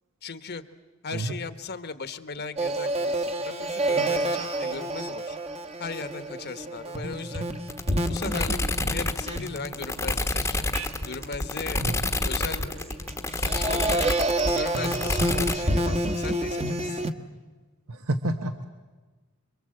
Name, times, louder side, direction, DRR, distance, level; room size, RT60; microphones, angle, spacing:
voice 1, 0.2-0.6 1.0-5.4 5.8-7.5 8.1-10.6 11.0-11.9 12.2-14.0 14.5-17.0, left 4 dB, 50° left, 11 dB, 1.3 m, -37 dB
sound 1, 2.6-10.3 10.7-11.2 11.6-17.1, right 1 dB, 30° right, 1.2 m, -29 dB
sound 2, 7.7-15.6, left 2 dB, 15° left, 1.1 m, -28 dB
voice 2, 17.9-18.7, right 1 dB, 75° right, 7 dB, 1.3 m, -29 dB
27.0 x 23.5 x 7.8 m, 1.3 s
head